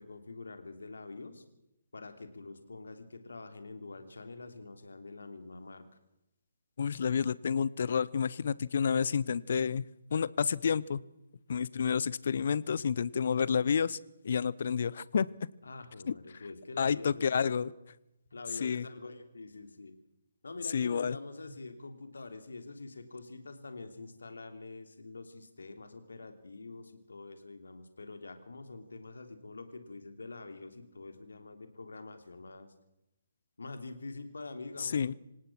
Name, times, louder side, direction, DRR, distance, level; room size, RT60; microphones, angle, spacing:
voice 1, 0.0-1.4 1.9-5.8 15.6-17.6 18.3-19.9 20.4-32.7 33.6-35.0, left 3 dB, 65° left, 8 dB, 3.2 m, -46 dB
voice 2, 6.8-9.8 10.1-11.0 11.5-14.0 14.2-15.3 16.1-16.2 16.8-17.7 18.6-18.9 20.7-21.2 34.8-35.1, left 6 dB, 50° left, 21 dB, 0.8 m, -29 dB
26.5 x 17.5 x 6.3 m, 0.89 s
figure-of-eight pair, 140°, 0 cm